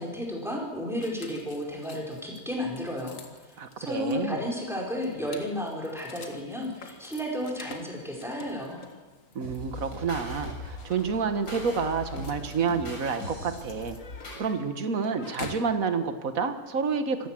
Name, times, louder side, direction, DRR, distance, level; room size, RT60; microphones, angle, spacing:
voice 1, 0.0-8.8, equal, ahead, -1 dB, 4.9 m, -33 dB
sound 1, 1.0-15.8, left 4 dB, 55° left, 2.2 m, -48 dB
voice 2, 3.6-4.4 9.4-14.0 14.4-17.3, right 5 dB, 60° right, 9 dB, 1.9 m, -29 dB
sound 2, 9.4-14.5, left 1 dB, 75° left, 7.5 m, -40 dB
26.0 x 14.5 x 7.7 m, 1.3 s
omnidirectional pair, 1.6 m